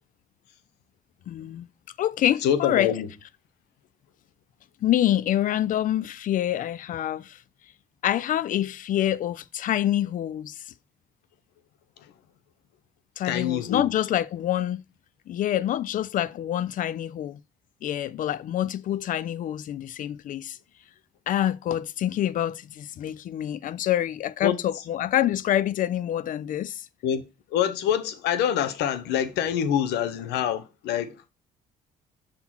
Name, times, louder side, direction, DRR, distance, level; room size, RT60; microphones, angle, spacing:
voice 1, 1.3-1.7 2.0-2.9 4.8-7.4 8.0-10.6 13.2-14.8 15.3-17.4 17.8-20.6 21.3-26.9, left 12 dB, 50° left, 0.5 m, -26 dB
voice 2, 2.4-3.1 13.2-13.9 24.4-24.5 27.0-27.2 27.5-31.2, left 9 dB, 85° left, 0.9 m, -25 dB
5.8 x 3.9 x 6.0 m
cardioid pair, 110°, 17 cm